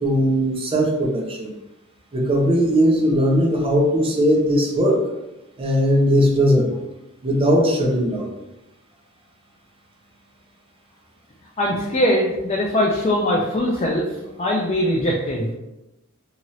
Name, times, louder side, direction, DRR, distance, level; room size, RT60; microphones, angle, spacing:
voice 1, 0.0-1.5 2.1-5.0 5.6-6.7 7.2-8.3, equal, 25° right, -1 dB, 0.6 m, -19 dB
voice 2, 11.6-14.1 14.4-15.5, left 1 dB, 30° left, -3 dB, 0.4 m, -21 dB
2.8 x 2.5 x 3.0 m, 0.96 s
head